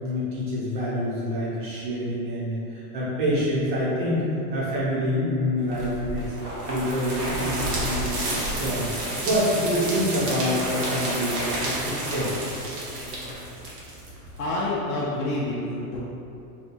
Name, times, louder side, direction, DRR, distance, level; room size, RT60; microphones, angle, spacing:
voice 1, 0.0-4.2 4.5-8.2 8.5-8.9 9.2-11.3 11.6-12.3, equal, 35° right, -8 dB, 0.6 m, -26 dB
sound 1, 5.7-14.5, right 1 dB, 85° right, 1.0 m, -30 dB
voice 2, 12.9-13.3 14.4-16.0, left 2 dB, 65° left, -6 dB, 0.5 m, -28 dB
2.9 x 2.2 x 2.5 m, 2.7 s
supercardioid pair, 175°, 47 cm